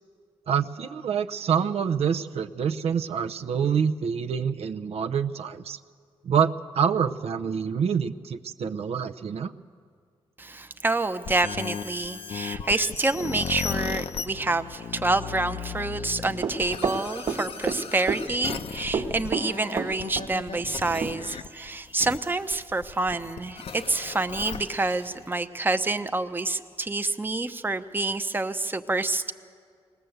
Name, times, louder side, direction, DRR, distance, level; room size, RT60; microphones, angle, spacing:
voice 1, 0.5-5.8 6.2-9.5, right 7 dB, 75° right, 6 dB, 0.6 m, -26 dB
voice 2, 10.4-29.3, right 2 dB, 20° right, 9 dB, 0.8 m, -28 dB
sound 1, 10.9-25.3, left 6 dB, 65° left, 0.7 m, -36 dB
Run, 16.4-17.8 18.1-18.6 18.9-20.3 20.6-20.7 21.0-21.1, right 5 dB, 55° right, 1.3 m, -28 dB
20.0 x 19.0 x 7.9 m, 2.1 s
cardioid pair, 85°, 11 cm